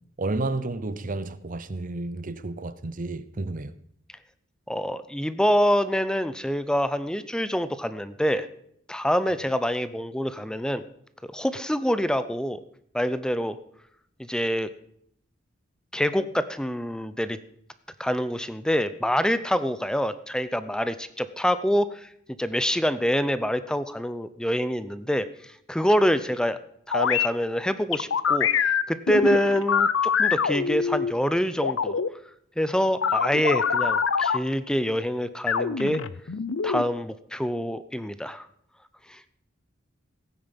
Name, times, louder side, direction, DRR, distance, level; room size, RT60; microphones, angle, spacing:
voice 1, 0.2-3.8, right 2 dB, 45° right, 0.8 m, -31 dB
voice 2, 4.7-8.5 8.9-10.8 11.2-12.6 12.9-13.6 14.2-14.7 15.9-17.4 18.0-22.1 22.4-26.6 26.9-32.0 32.6-36.0 36.6-38.5 39.1-39.2, equal, 5° left, 0.6 m, -26 dB
sound 1, 26.9-27.3 27.9-31.1 31.6-32.1 33.0-34.4 35.5-36.8, left 6 dB, 75° left, 0.6 m, -24 dB
16.5 x 9.3 x 5.3 m
head